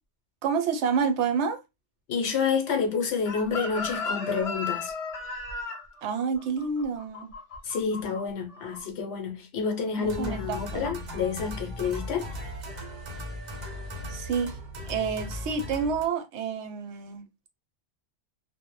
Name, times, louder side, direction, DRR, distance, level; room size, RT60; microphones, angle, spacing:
voice 1, 0.4-1.6 6.0-7.3 10.0-10.9 14.1-14.5 14.9-17.2, right 6 dB, 75° right, 0.8 m, -28 dB
voice 2, 2.1-4.9 7.6-12.3, left 5 dB, 70° left, 0.9 m, -29 dB
Chicken rooster, 3.3-8.2 8.5-8.8, left 4 dB, 45° left, 0.4 m, -35 dB
sound 1, 10.0-16.1, left 1 dB, 50° right, 0.6 m, -37 dB
2.1 x 2.0 x 2.9 m
omnidirectional pair, 1.2 m